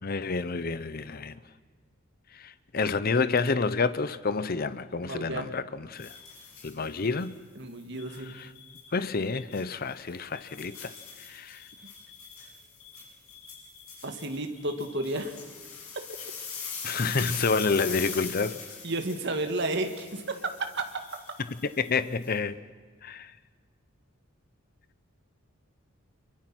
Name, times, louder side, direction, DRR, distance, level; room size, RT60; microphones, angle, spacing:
voice 1, 0.0-1.3 2.3-6.2 6.6-7.4 8.2-8.5 8.9-10.9 11.2-11.6 16.8-18.6 21.8-22.6 23.0-23.3, left 4 dB, 45° left, 14 dB, 0.7 m, -29 dB
voice 2, 5.0-5.5 7.6-8.4 14.0-15.3 15.9-16.0 18.8-20.4, right 2 dB, 55° right, 5 dB, 1.9 m, -32 dB
sound 1, 6.0-7.3 8.0-8.9 9.4-9.6 10.1-22.3, left 6 dB, 80° left, 6.9 m, -42 dB
26.5 x 23.0 x 6.1 m, 1.5 s
head